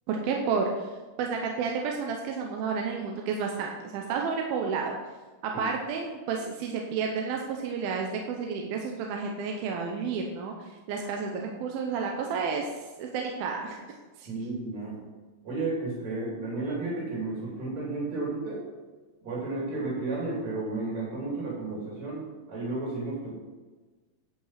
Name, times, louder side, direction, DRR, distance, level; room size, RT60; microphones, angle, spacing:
voice 1, 0.1-0.9 1.2-4.9 5.4-12.7 13.0-13.8 14.2-14.5, right 5 dB, 80° right, 1 dB, 2.7 m, -31 dB
voice 2, 14.3-15.0 15.4-18.6 19.2-23.3, right 2 dB, 50° right, -5 dB, 3.8 m, -32 dB
10.5 x 5.8 x 5.8 m, 1.3 s
omnidirectional pair, 4.3 m